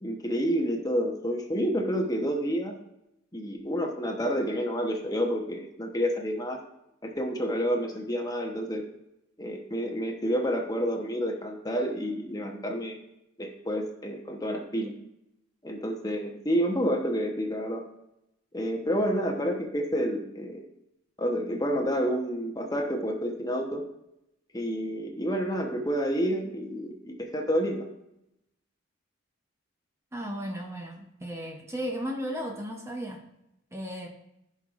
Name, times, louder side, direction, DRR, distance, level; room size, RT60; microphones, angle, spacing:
voice 1, 0.0-2.8 3.3-6.6 7.0-8.8 9.4-13.0 13.4-14.9 15.6-17.9 18.5-20.6 21.2-23.8 24.5-27.9, equal, 20° left, 3 dB, 1.0 m, -29 dB
voice 2, 30.1-33.3 33.7-34.1, equal, 15° right, 2 dB, 0.8 m, -35 dB
16.0 x 5.5 x 2.5 m, 0.84 s
head